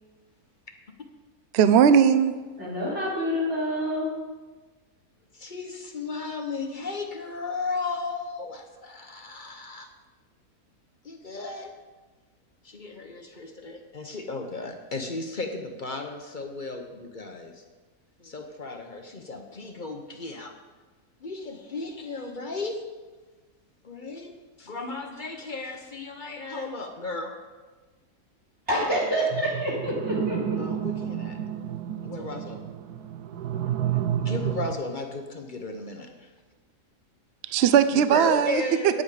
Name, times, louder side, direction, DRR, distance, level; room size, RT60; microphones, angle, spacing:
voice 1, 1.5-2.4 37.5-39.0, right 8 dB, 65° right, 12 dB, 0.6 m, -19 dB
voice 2, 2.6-4.1 28.7-30.6, equal, 45° right, -4 dB, 3.9 m, -27 dB
voice 3, 5.4-9.9 11.0-11.7 12.6-17.6 18.2-20.5 21.2-22.8 23.8-27.3 28.9-29.0 30.6-31.4 32.0-32.6 32.9-33.0 33.5-36.3 37.9-39.0, left 3 dB, 40° left, 4 dB, 0.8 m, -35 dB
sound 1, 29.3-34.8, right 10 dB, 80° right, 1.2 m, -30 dB
9.7 x 8.8 x 4.9 m, 1.3 s
omnidirectional pair, 1.7 m